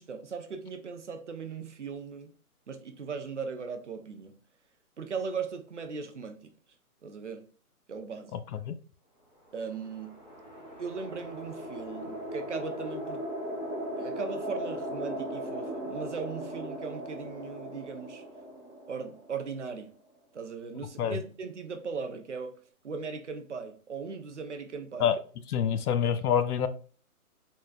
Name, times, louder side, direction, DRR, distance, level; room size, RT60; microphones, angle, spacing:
voice 1, 0.0-2.3 2.7-4.4 5.0-6.5 7.0-7.5 7.9-8.4 9.5-10.2 10.8-13.3 14.0-18.2 18.9-19.9 20.3-22.6 22.8-25.1, right 5 dB, 55° right, 0.5 m, -38 dB
sound 1, 9.6-20.0, equal, 35° left, 0.4 m, -38 dB
voice 2, 25.5-26.7, left 8 dB, 80° left, 0.6 m, -26 dB
3.7 x 2.2 x 2.4 m
hypercardioid pair, 180°, 45 cm